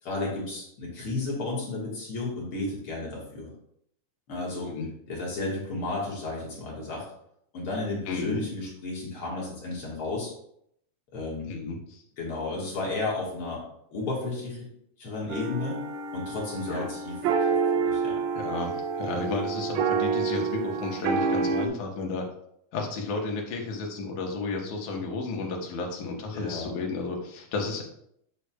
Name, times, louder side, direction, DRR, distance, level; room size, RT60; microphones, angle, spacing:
voice 1, 0.0-3.5 4.3-4.7 5.1-7.1 7.5-10.3 11.1-11.5 12.2-13.6 13.9-14.7 15.0-15.9 16.1-17.2 17.7-18.2 26.3-26.7, left 2 dB, 50° left, -4 dB, 2.0 m, -33 dB
voice 2, 4.5-4.9 8.1-8.4 11.4-12.0 16.7-16.9 18.3-22.3 22.7-27.8, left 3 dB, 75° left, 0 dB, 2.5 m, -32 dB
sound 1, 15.3-21.6, right 5 dB, 80° right, 1.5 m, -28 dB
7.4 x 6.3 x 2.2 m, 0.72 s
omnidirectional pair, 3.7 m